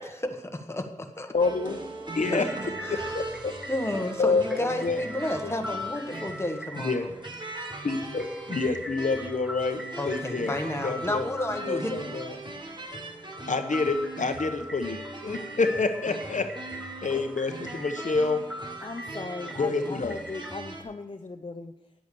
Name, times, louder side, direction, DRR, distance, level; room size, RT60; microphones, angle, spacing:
voice 1, 0.4-1.3 2.2-3.3 3.7-7.1 10.0-11.9, left 1 dB, 20° left, 4 dB, 1.4 m, -32 dB
voice 2, 1.3-1.8 2.1-2.5 3.1-3.5 4.2-5.0 6.8-7.1 7.8-10.5 10.8-11.3 11.6-12.3 13.5-16.4 16.7-18.4 19.6-20.1, left 3 dB, 70° left, 6 dB, 1.0 m, -28 dB
sound 1, 1.4-20.8, right 2 dB, 35° right, 1.6 m, -40 dB
sound 2, 2.4-20.5, left 1 dB, 5° right, 0.8 m, -42 dB
voice 3, 18.8-21.7, left 3 dB, 40° left, 5 dB, 0.7 m, -38 dB
10.0 x 8.1 x 6.9 m, 0.95 s
wide cardioid pair, 80°, 13 cm